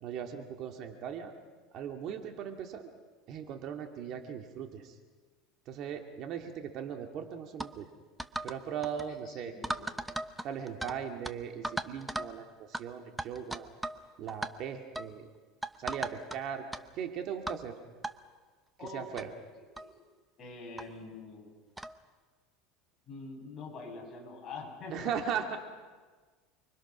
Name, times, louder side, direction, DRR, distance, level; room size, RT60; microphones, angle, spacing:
voice 1, 0.0-1.3 1.7-2.9 3.3-4.9 5.7-7.9 8.4-9.5 10.4-13.7 14.2-15.2 15.8-16.6 17.0-17.7 18.9-19.3 24.9-25.6, right 8 dB, 45° right, 4 dB, 2.4 m, -38 dB
sound 1, 7.6-7.7 8.2-8.6 8.8-9.1 9.6-11.0 11.2-11.3 11.6-12.3 12.7-12.8 13.2-14.0 14.3-14.5 15.0-15.1 15.6-16.4 16.7-16.8 17.5-17.6 18.0-18.1 18.9-19.0 19.2-19.3 19.8-19.9 20.8-20.9 21.8-22.0, right 1 dB, 5° right, 0.9 m, -36 dB
voice 2, 9.1-10.0 18.8-19.3 19.8-19.9 20.4-21.5 23.1-25.1, left 3 dB, 30° left, -1 dB, 8.0 m, -45 dB
29.5 x 23.5 x 6.3 m, 1.4 s
supercardioid pair, 145°, 0 cm